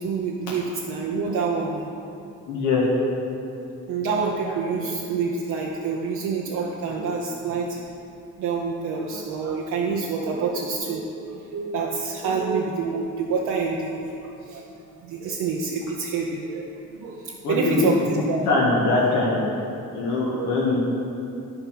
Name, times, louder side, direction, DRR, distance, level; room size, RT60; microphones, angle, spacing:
voice 1, 0.0-1.9 3.9-7.8 8.4-14.6 15.0-18.5 19.0-19.1 20.0-20.7, right 4 dB, 85° right, -2 dB, 0.8 m, -27 dB
voice 2, 2.5-2.8 17.4-17.9 18.4-19.4 19.9-20.8, left 3 dB, 75° left, -7 dB, 1.8 m, -22 dB
11.5 x 4.5 x 5.9 m, 2.6 s
cardioid pair, 90°, 30 cm